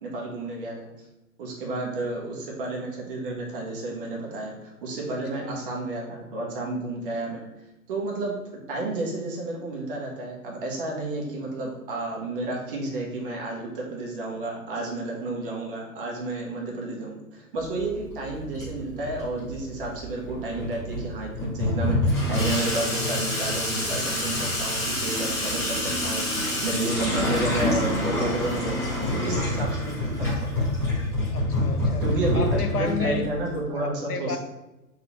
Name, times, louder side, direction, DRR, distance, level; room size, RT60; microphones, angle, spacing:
voice 1, 0.0-0.9 1.4-7.4 7.9-8.3 8.7-30.7 32.0-34.4, right 2 dB, 35° right, -1 dB, 1.0 m, -31 dB
voice 2, 5.1-5.7 31.3-32.0 32.3-33.3 33.7-34.4, left 5 dB, 80° left, 7 dB, 0.6 m, -32 dB
Water tap faucet / Sink (filling or washing), 17.6-33.6, left 1 dB, 5° left, 1.1 m, -27 dB
sound 1, 20.7-20.9 21.4-21.5 22.6-22.9 23.2-23.4 24.4-24.7 25.2-25.4 26.1-26.3 26.8-27.0 27.6-27.8 28.6-28.9 29.6-29.7, equal, 15° right, 0.8 m, -42 dB
4.1 x 2.8 x 3.0 m, 0.99 s
figure-of-eight pair, 120°, 45 cm